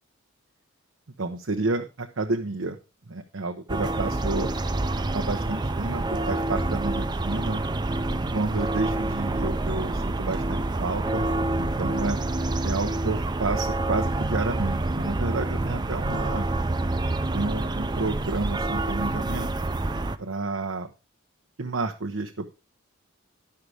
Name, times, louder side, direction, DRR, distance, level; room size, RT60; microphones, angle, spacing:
voice 1, 1.2-2.8 3.1-4.5 5.1-7.6 8.3-11.3 11.6-12.2 12.6-16.5 17.3-19.7 20.2-20.9 21.6-22.5, right 3 dB, 75° right, 3 dB, 0.9 m, -30 dB
sound 1, 3.7-20.2, right 2 dB, 20° right, 0.5 m, -27 dB
11.0 x 5.7 x 4.8 m, 0.31 s
head